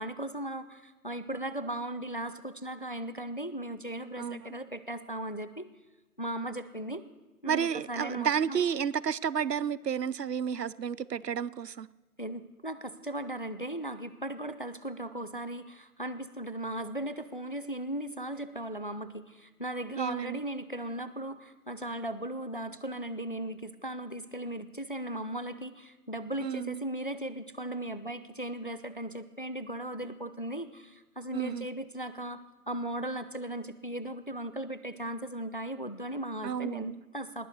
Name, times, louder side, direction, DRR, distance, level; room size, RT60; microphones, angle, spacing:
voice 1, 0.0-5.7 6.2-7.0 7.4-8.6 12.2-32.4 32.7-37.5, right 1 dB, 35° left, 13 dB, 0.4 m, -37 dB
voice 2, 4.2-4.6 7.5-11.9 20.0-20.4 26.4-26.8 31.3-31.7 36.4-37.0, right 7 dB, 85° right, 20 dB, 0.6 m, -31 dB
19.5 x 7.9 x 6.7 m, 1.2 s
figure-of-eight pair, 145°, 47 cm